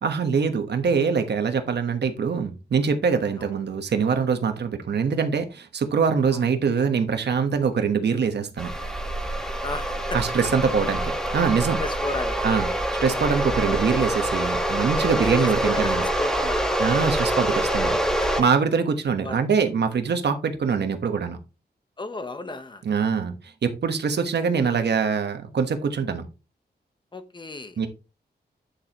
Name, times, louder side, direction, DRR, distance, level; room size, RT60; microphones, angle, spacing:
voice 1, 0.0-8.7 10.1-11.8 12.4-12.7 13.0-16.0 16.8-18.0 18.4-21.4 22.8-23.3 23.6-26.3 27.8-27.9, right 6 dB, 80° right, 1.3 m, -23 dB
sound 1, 8.6-18.4, right 1 dB, 5° left, 1.4 m, -25 dB
voice 2, 9.6-10.2 11.4-11.5 11.8-12.5 15.0-16.6 18.2-18.3 19.2-19.4 22.0-22.8 27.1-27.8, left 2 dB, 30° left, 1.0 m, -33 dB
9.6 x 6.8 x 3.0 m
wide cardioid pair, 165°, 17 cm